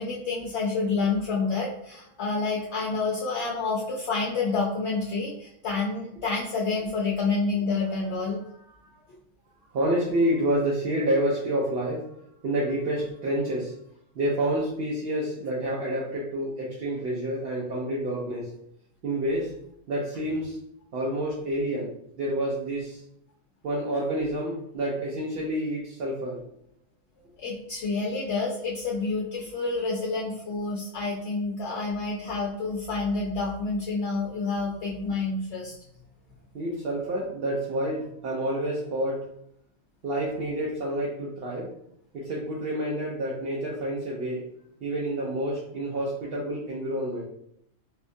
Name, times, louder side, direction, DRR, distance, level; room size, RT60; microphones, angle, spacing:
voice 1, 0.0-8.4 27.4-35.7, left 4 dB, 65° left, -3 dB, 0.8 m, -28 dB
voice 2, 9.7-12.1 12.4-13.7 14.2-18.5 19.0-19.5 19.9-20.6 20.9-21.9 22.2-23.0 23.6-26.4 31.7-31.8 36.5-39.2 40.0-41.7 42.1-44.5 44.8-47.2, right 1 dB, 55° right, -4 dB, 0.8 m, -28 dB
4.4 x 2.3 x 2.6 m, 0.73 s
omnidirectional pair, 1.3 m